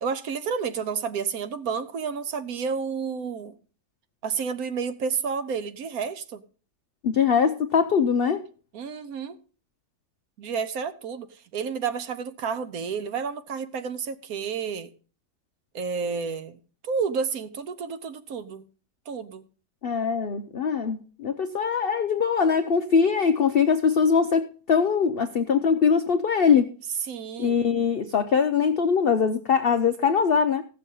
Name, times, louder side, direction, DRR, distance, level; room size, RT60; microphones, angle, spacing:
voice 1, 0.0-3.6 4.2-6.4 8.7-9.4 10.4-14.9 15.7-18.6 19.1-19.4 27.0-27.6, right 6 dB, 65° right, 1.2 m, -30 dB
voice 2, 7.0-8.4 19.8-26.7 27.4-30.6, left 6 dB, 75° left, 0.5 m, -22 dB
15.5 x 6.6 x 5.3 m
omnidirectional pair, 1.8 m